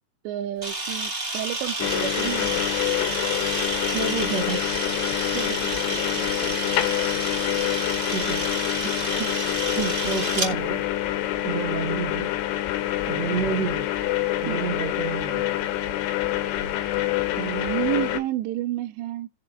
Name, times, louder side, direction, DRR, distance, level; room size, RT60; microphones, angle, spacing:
voice 1, 0.2-2.6 5.3-6.6 9.2-9.3 9.8-10.0 14.5-14.7 17.4-19.3, right 14 dB, 85° right, 2.9 m, -31 dB
Camera, 0.6-10.5, right 2 dB, 40° right, 0.8 m, -30 dB
sound 1, 1.8-18.2, left 13 dB, 80° left, 2.9 m, -26 dB
voice 2, 3.9-4.7 8.1-8.5 10.0-10.8 11.4-12.3 13.1-13.9 14.4-15.5, right 5 dB, 70° right, 1.6 m, -29 dB
sound 2, 10.1-13.7, left 1 dB, 30° left, 1.2 m, -49 dB
18.5 x 6.7 x 2.5 m
omnidirectional pair, 4.9 m